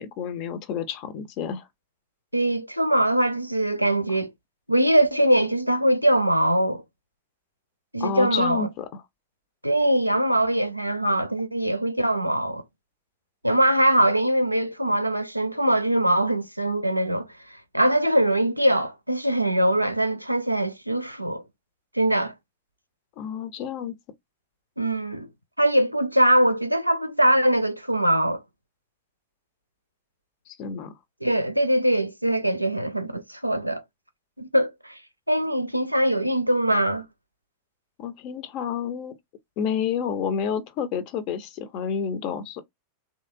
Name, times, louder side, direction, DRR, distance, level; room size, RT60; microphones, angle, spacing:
voice 1, 0.0-1.7 8.0-8.9 23.2-24.0 30.5-30.9 38.0-39.1 39.6-42.6, left 7 dB, 45° left, 0.6 m, -29 dB
voice 2, 2.3-4.3 4.7-6.8 7.9-8.7 9.6-12.6 13.4-17.3 17.7-21.4 21.9-22.3 24.8-25.3 25.6-28.4 31.2-33.8 34.4-35.0 35.3-37.1, right 1 dB, 90° right, 0.4 m, -22 dB
3.1 x 2.7 x 2.5 m
figure-of-eight pair, 90°, 0 cm